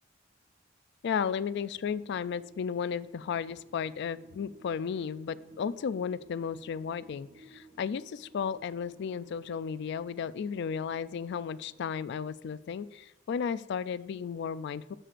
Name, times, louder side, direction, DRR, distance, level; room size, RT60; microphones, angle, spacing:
voice 1, 1.0-14.9, left 7 dB, 60° left, 16 dB, 0.3 m, -34 dB
sound 1, 1.7-12.3, right 1 dB, 65° right, 1.1 m, -57 dB
11.0 x 7.5 x 2.5 m, 0.91 s
head